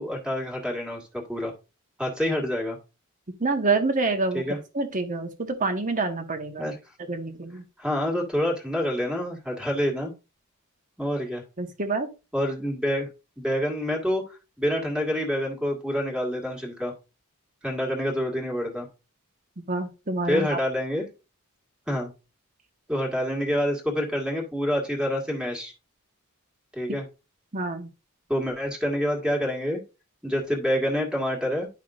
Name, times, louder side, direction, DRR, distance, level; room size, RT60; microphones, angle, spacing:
voice 1, 0.0-1.5 2.0-2.8 4.3-4.6 6.6-6.8 7.8-10.1 11.0-11.4 12.3-13.1 13.4-16.9 17.6-18.9 20.3-21.1 21.9-22.1 22.9-25.7 26.7-27.1 28.3-29.8 30.2-31.7, equal, 5° right, 0 dB, 1.9 m, -27 dB
voice 2, 3.4-4.4 4.7-5.3 5.6-6.7 7.1-7.6 11.6-12.1 19.7-20.6 27.5-27.9, right 3 dB, 35° right, 6 dB, 1.2 m, -27 dB
10.5 x 5.7 x 2.5 m, 0.29 s
head